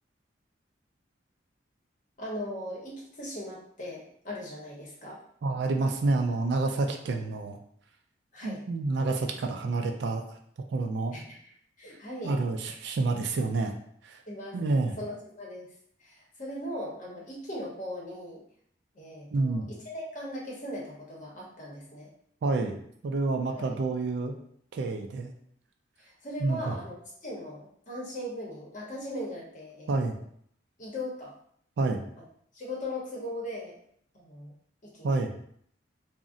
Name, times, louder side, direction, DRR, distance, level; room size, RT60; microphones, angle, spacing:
voice 1, 2.2-5.2 8.3-8.6 11.1-12.3 14.3-15.7 16.0-18.4 18.9-22.1 23.5-23.8 26.0-30.2 30.8-31.3 32.5-33.8 34.1-34.5 34.8-35.2, left 1 dB, 40° left, -3 dB, 0.8 m, -39 dB
voice 2, 5.4-7.6 8.4-10.4 10.7-11.2 12.2-13.8 14.0-14.2 14.5-14.9 19.3-19.7 22.4-24.3 24.7-25.3 26.4-26.8 29.9-30.2 31.8-32.1 35.0-35.3, right 3 dB, 60° right, 3 dB, 0.3 m, -28 dB
2.5 x 2.0 x 3.7 m, 0.66 s
head